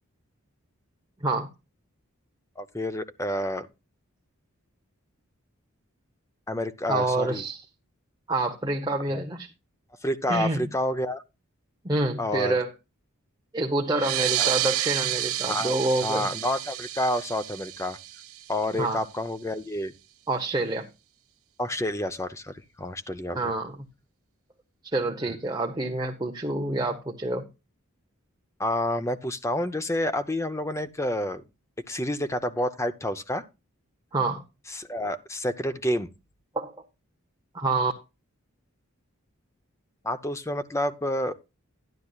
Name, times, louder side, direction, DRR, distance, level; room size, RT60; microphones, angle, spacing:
voice 1, 2.6-3.7 6.5-7.4 9.1-9.2 10.0-11.2 12.2-12.6 15.5-15.8 16.0-18.0 18.5-19.9 21.6-23.5 28.6-31.4 31.9-33.4 34.7-36.1 40.0-41.3, left 1 dB, 15° left, 0.6 m, -29 dB
voice 2, 6.9-7.6 8.3-9.5 10.3-10.7 11.8-12.7 13.5-16.3 18.8-19.0 20.3-20.9 23.3-23.9 24.9-27.5 34.1-34.4 36.5-36.7 37.5-37.9, right 2 dB, 20° right, 0.9 m, -27 dB
sound 1, 13.9-19.0, right 12 dB, 90° right, 0.9 m, -30 dB
12.0 x 11.0 x 2.3 m
head